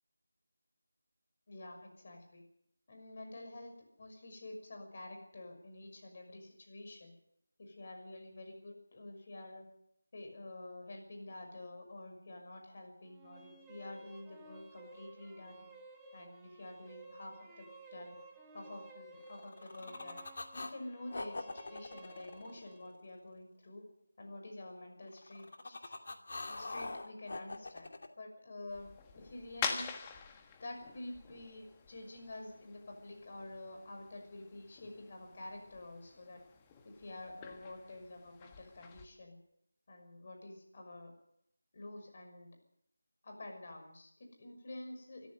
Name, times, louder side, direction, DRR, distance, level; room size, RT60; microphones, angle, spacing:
voice 1, 1.5-2.4 2.9-7.1 7.6-9.6 10.1-15.6 16.1-18.2 18.5-20.2 20.5-23.9 24.2-26.0 26.6-27.9 28.2-28.9 29.1-29.9 30.3-36.4 36.8-39.4 39.9-41.1 41.7-42.5 43.2-45.3, left 2 dB, 35° left, 4 dB, 6.1 m, -49 dB
sound 1, 13.0-23.0, right 2 dB, 5° right, 1.7 m, -56 dB
sound 2, 19.2-20.8 21.1-23.3 25.1-28.1, left 2 dB, 50° left, 2.4 m, -44 dB
sound 3, 28.7-39.1, left 6 dB, 15° left, 1.3 m, -46 dB
24.0 x 14.5 x 7.9 m, 0.75 s
figure-of-eight pair, 175°, 0 cm